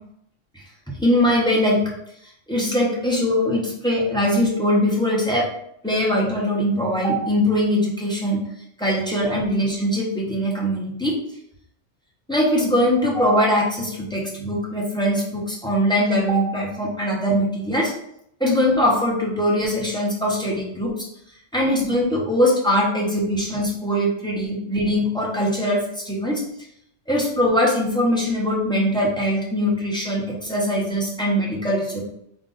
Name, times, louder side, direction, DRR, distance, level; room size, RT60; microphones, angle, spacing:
voice 1, 0.5-1.9 2.5-5.5 5.8-8.4 8.8-11.2 12.3-17.9 18.4-21.1 21.5-26.4 27.1-32.0, equal, 5° left, -4 dB, 0.7 m, -21 dB
3.9 x 2.6 x 3.8 m, 0.74 s
omnidirectional pair, 1.2 m